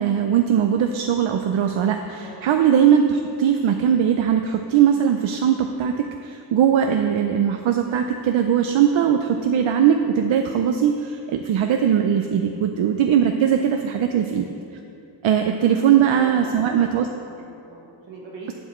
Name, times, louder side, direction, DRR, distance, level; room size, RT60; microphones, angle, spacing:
voice 1, 0.0-14.5 15.2-17.1, right 8 dB, 90° right, 5 dB, 0.5 m, -20 dB
voice 2, 15.6-16.9 17.3-18.5, right 2 dB, 70° right, -4 dB, 1.2 m, -40 dB
11.5 x 8.0 x 3.1 m, 2.7 s
wide cardioid pair, 125°, 45 cm